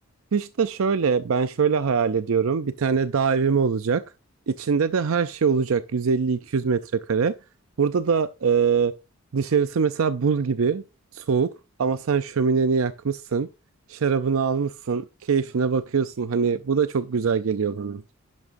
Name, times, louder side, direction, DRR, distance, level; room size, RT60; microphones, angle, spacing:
voice 1, 0.3-4.0 4.5-7.3 7.8-8.9 9.3-10.8 11.1-11.5 11.8-13.5 13.9-18.0, right 5 dB, 65° right, 0.5 m, -23 dB
11.0 x 10.5 x 2.6 m
head